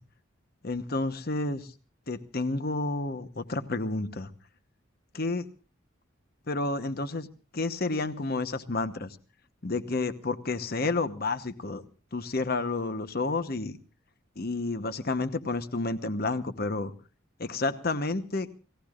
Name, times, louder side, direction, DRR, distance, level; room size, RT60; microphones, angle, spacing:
voice 1, 0.6-1.7 2.1-4.3 5.1-5.5 6.5-7.3 7.5-9.1 9.6-11.8 12.1-13.7 14.4-16.9 17.4-18.6, left 3 dB, 50° left, 11 dB, 1.0 m, -30 dB
30.0 x 17.0 x 2.5 m, 0.36 s
head